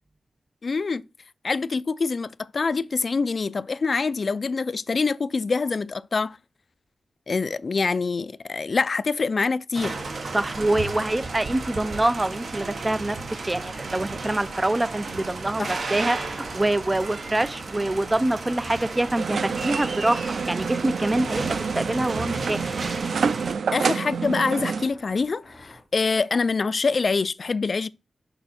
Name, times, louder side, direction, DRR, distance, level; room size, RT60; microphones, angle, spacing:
voice 1, 0.6-1.0 1.4-6.4 7.3-10.0 15.6-15.8 23.7-27.9, left 4 dB, 45° left, 0.4 m, -25 dB
sound 1, 9.7-23.5, right 3 dB, 50° right, 1.1 m, -33 dB
voice 2, 10.3-13.2 13.4-22.7, right 1 dB, 15° right, 0.4 m, -25 dB
sound 2, 11.3-26.4, left 1 dB, 15° left, 3.7 m, -51 dB
sound 3, 19.2-24.9, right 5 dB, 85° right, 0.4 m, -28 dB
6.8 x 5.1 x 4.2 m
wide cardioid pair, 165°, 0 cm